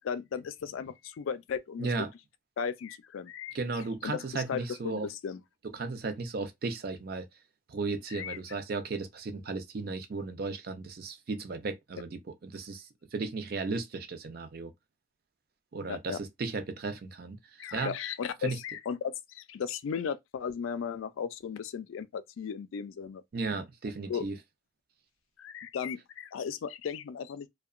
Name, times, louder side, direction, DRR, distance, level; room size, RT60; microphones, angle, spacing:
voice 1, 0.0-1.9 2.6-4.6 4.9-5.4 8.1-8.4 15.9-16.2 17.6-23.2 24.1-24.2 25.4-27.5, left 7 dB, 90° left, 0.3 m, -36 dB
voice 2, 1.8-2.1 3.5-5.1 5.7-7.3 7.7-14.7 15.7-17.4 17.7-17.9 18.4-18.6 23.3-24.4, right 3 dB, 50° right, 0.4 m, -35 dB
2.7 x 2.1 x 2.4 m
head